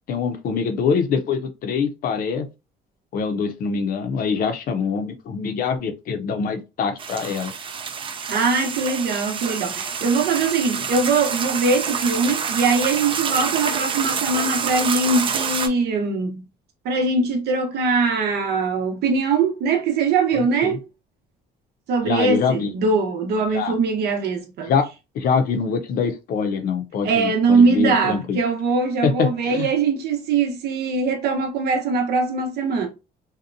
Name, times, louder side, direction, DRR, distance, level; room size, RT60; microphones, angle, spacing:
voice 1, 0.1-2.5 3.1-7.5 20.3-20.8 22.0-22.7 23.5-23.7 24.7-24.8 25.1-28.4 29.0-29.7, left 5 dB, 60° left, 0.6 m, -24 dB
sound 1, 7.0-15.7, right 6 dB, 30° right, 0.4 m, -27 dB
voice 2, 8.3-16.4 16.8-20.8 21.9-24.7 27.0-32.9, right 4 dB, 75° right, 0.8 m, -21 dB
2.8 x 2.1 x 2.5 m
cardioid pair, 110°, 17 cm